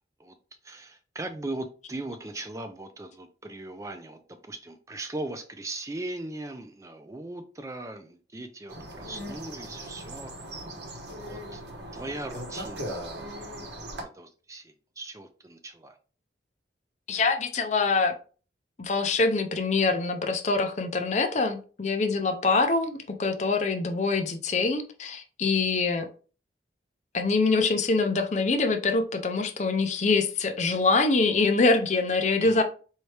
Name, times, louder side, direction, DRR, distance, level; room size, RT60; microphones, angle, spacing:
voice 1, 0.6-10.3 11.3-11.6 11.9-13.0 14.0-16.0 32.4-32.6, right 2 dB, 15° right, 0.3 m, -39 dB
sound 1, 8.7-14.0, right 1 dB, 70° right, 1.1 m, -39 dB
voice 2, 17.1-18.1 18.8-26.1 27.1-32.6, left 3 dB, 40° left, 0.5 m, -24 dB
4.5 x 2.7 x 3.2 m
head